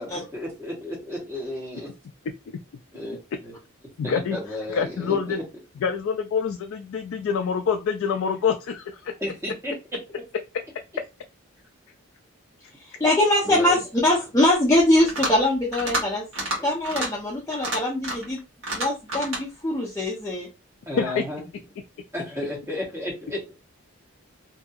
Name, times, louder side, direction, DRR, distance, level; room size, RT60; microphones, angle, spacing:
voice 1, 0.0-1.9 2.9-3.5 4.0-5.4 9.2-9.7 13.4-13.8 16.6-16.7 20.9-21.5 22.1-23.6, left 1 dB, 15° right, -3 dB, 1.1 m, -33 dB
voice 2, 4.0-4.4 4.7-5.4 5.8-9.1 21.0-21.2, left 6 dB, 70° left, 4 dB, 0.3 m, -26 dB
voice 3, 12.8-16.2 16.6-18.4 18.7-20.5, left 1 dB, 15° left, -4 dB, 0.5 m, -22 dB
sound 1, 15.0-15.4 15.7-16.0 16.3-16.6 16.8-17.1 17.5-18.3 18.6-19.4, right 1 dB, 60° right, 1.3 m, -28 dB
2.7 x 2.6 x 2.4 m, 0.26 s
head